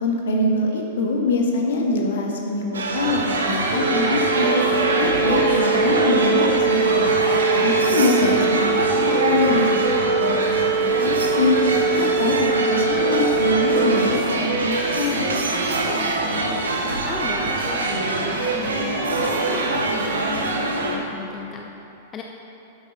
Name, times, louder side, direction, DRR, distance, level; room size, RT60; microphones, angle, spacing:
voice 1, 0.0-4.6 5.0-7.1 7.6-9.7 10.0-11.6 11.9-15.3, left 2 dB, 60° left, 1 dB, 1.5 m, -24 dB
sound 1, 2.7-21.0, right 2 dB, 70° right, 1.1 m, -23 dB
Organ, 3.7-14.8, right 3 dB, 5° right, 2.4 m, -23 dB
voice 2, 7.8-8.3 15.9-21.7 22.1-22.2, left 5 dB, 25° left, 1 dB, 0.7 m, -36 dB
12.0 x 7.9 x 4.2 m, 2.9 s
figure-of-eight pair, 95°, 0 cm